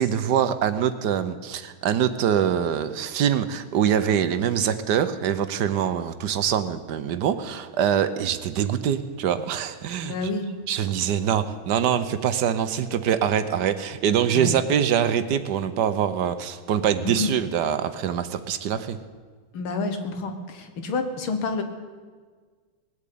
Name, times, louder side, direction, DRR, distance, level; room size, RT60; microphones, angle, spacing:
voice 1, 0.0-10.3 10.7-19.0, right 9 dB, 65° right, 11 dB, 1.2 m, -24 dB
voice 2, 10.0-10.5 14.3-14.6 17.0-17.3 19.5-21.6, left 3 dB, 75° left, 7 dB, 2.2 m, -28 dB
19.0 x 8.6 x 8.6 m, 1.5 s
omnidirectional pair, 2.3 m